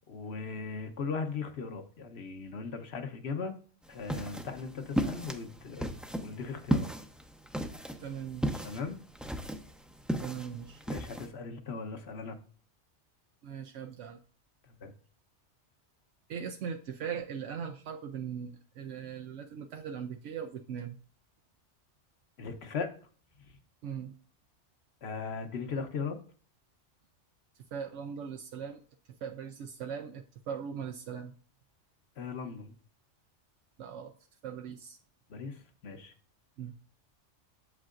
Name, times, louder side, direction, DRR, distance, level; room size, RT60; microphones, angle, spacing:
voice 1, 0.1-3.5 3.9-5.9 6.2-6.9 8.6-9.0 10.9-12.4 14.8-14.9 22.4-22.9 25.0-26.2 32.2-32.7 35.3-36.1, left 5 dB, 65° left, 7 dB, 1.2 m, -38 dB
sound 1, 3.9-11.3, equal, ahead, 0.4 m, -35 dB
voice 2, 8.0-8.7 10.2-10.8 13.4-14.2 16.3-21.0 23.8-24.2 27.7-28.8 29.2-31.3 33.8-34.1 34.4-35.0 36.6-36.8, right 7 dB, 85° right, 4 dB, 0.9 m, -40 dB
8.3 x 7.4 x 2.5 m, 0.42 s
omnidirectional pair, 1.2 m